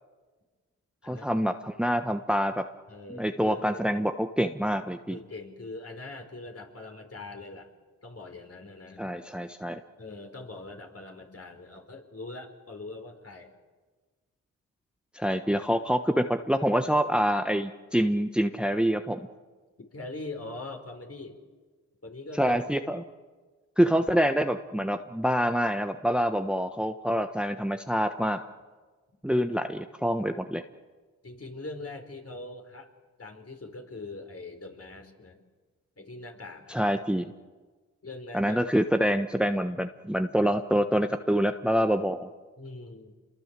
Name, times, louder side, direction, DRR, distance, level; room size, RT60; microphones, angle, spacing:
voice 1, 1.0-2.7 3.1-5.2 9.0-9.8 15.1-19.3 22.4-23.0 23.8-28.4 29.2-30.6 36.7-37.3 38.3-42.3, equal, 5° right, 7 dB, 1.3 m, -26 dB
voice 2, 2.9-3.8 5.1-7.7 8.0-9.0 10.0-13.5 19.8-21.4 22.0-22.6 31.2-32.9 33.2-35.4 36.0-36.9 38.0-39.1 42.6-43.1, left 2 dB, 45° left, 4 dB, 4.9 m, -42 dB
27.5 x 22.5 x 7.7 m, 1.4 s
supercardioid pair, 40°, 33 cm